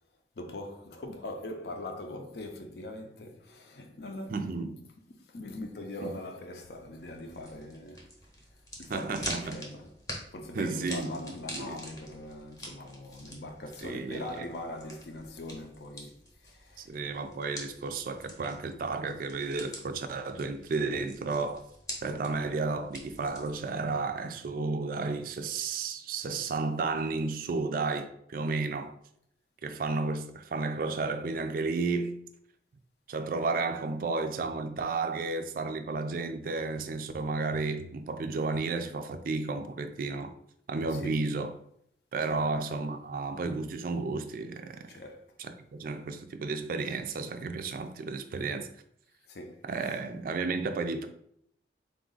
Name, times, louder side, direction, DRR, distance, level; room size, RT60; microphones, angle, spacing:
voice 1, 0.4-4.7 5.1-8.2 8.8-9.9 10.3-16.9 40.9-41.3 42.3-42.4 44.9-45.4 49.3-50.0, left 1 dB, 65° left, 0.6 m, -41 dB
voice 2, 4.3-4.8 6.0-6.1 8.9-9.6 10.5-11.8 13.8-14.5 16.8-21.7 22.0-28.9 29.6-32.2 33.1-40.3 40.7-41.5 42.1-44.9 45.4-48.7 49.6-51.1, right 3 dB, 50° right, 0.3 m, -32 dB
sound 1, 7.0-23.7, left 1 dB, 20° left, 0.8 m, -46 dB
3.7 x 2.4 x 3.8 m
head